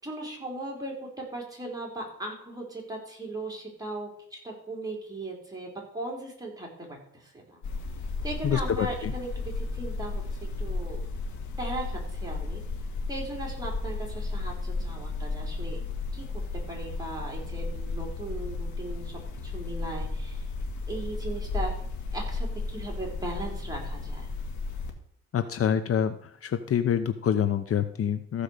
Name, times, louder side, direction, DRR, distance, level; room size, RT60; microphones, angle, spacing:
voice 1, 0.0-7.6 8.2-9.3 9.6-11.0 11.6-12.6 13.1-15.8 16.1-16.2 16.7-20.5 20.9-21.7 22.1-24.3, right 2 dB, 10° right, -1 dB, 4.5 m, -38 dB
sound 1, 7.6-24.9, left 3 dB, 75° left, 2.1 m, -34 dB
voice 2, 8.4-9.1 25.3-26.1 26.4-28.4, left 8 dB, 50° left, 10 dB, 0.8 m, -26 dB
15.0 x 5.0 x 6.7 m, 0.65 s
cardioid pair, 90°, 30 cm